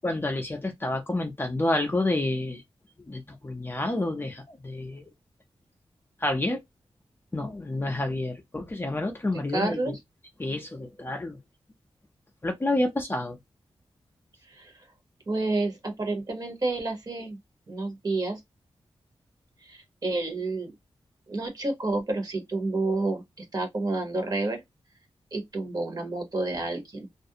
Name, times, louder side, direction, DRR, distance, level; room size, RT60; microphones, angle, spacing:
voice 1, 0.0-2.6 3.1-5.0 6.2-6.6 7.3-9.9 10.4-11.4 12.4-13.4, left 2 dB, 20° left, 0.5 m, -29 dB
voice 2, 9.3-10.0 14.5-14.7 15.3-17.4 17.7-18.4 19.6-20.7 21.3-24.6 25.3-27.1, right 2 dB, 40° right, 0.9 m, -30 dB
2.4 x 2.1 x 2.7 m
wide cardioid pair, 145°, 10 cm